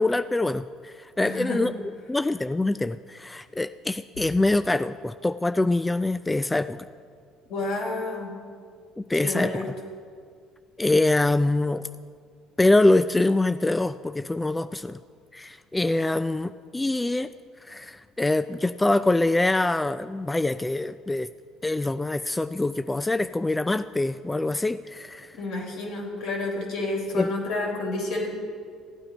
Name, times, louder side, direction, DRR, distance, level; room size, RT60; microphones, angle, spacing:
voice 1, 0.0-1.7 2.1-6.8 9.0-9.5 10.8-11.9 12.6-15.0 15.3-17.3 17.6-21.3 21.6-25.4 27.1-27.3, left 2 dB, 15° left, 12 dB, 0.3 m, -24 dB
voice 2, 1.2-1.6 7.5-8.3 9.2-9.6 25.4-28.3, left 2 dB, 70° left, -1 dB, 3.6 m, -30 dB
16.0 x 8.9 x 5.1 m, 2.1 s
supercardioid pair, 80°, 0 cm